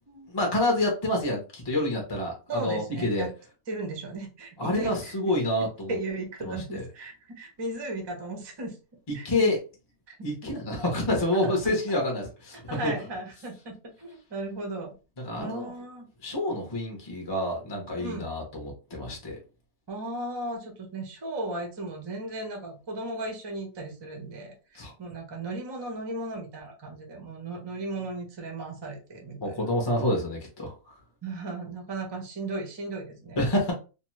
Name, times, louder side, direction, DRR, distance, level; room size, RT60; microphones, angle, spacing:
voice 1, 0.3-3.3 4.6-5.9 6.4-6.8 9.2-9.6 10.2-12.9 15.2-15.7 16.2-19.4 24.7-24.9 29.4-30.7 33.4-33.7, left 1 dB, 30° left, 1 dB, 0.5 m, -28 dB
voice 2, 2.5-3.3 3.7-5.3 5.9-8.8 9.1-9.5 10.1-10.3 11.4-11.6 12.7-14.9 15.4-16.1 18.0-18.3 19.9-29.7 31.2-33.4, right 2 dB, 35° right, 2 dB, 0.4 m, -36 dB
2.6 x 2.2 x 3.0 m, 0.32 s
omnidirectional pair, 1.5 m